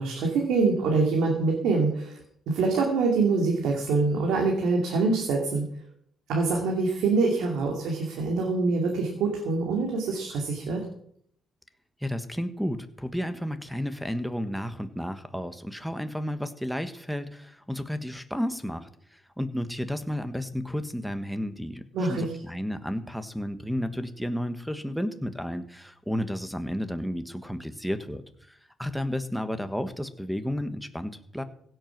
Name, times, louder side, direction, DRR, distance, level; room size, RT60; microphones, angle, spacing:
voice 1, 0.0-2.2 2.5-5.6 6.3-10.8 21.9-22.3, right 3 dB, 85° right, 1 dB, 2.7 m, -25 dB
voice 2, 12.0-31.4, equal, ahead, 10 dB, 1.4 m, -32 dB
16.5 x 7.9 x 6.0 m, 0.65 s
cardioid pair, 90°, 0 cm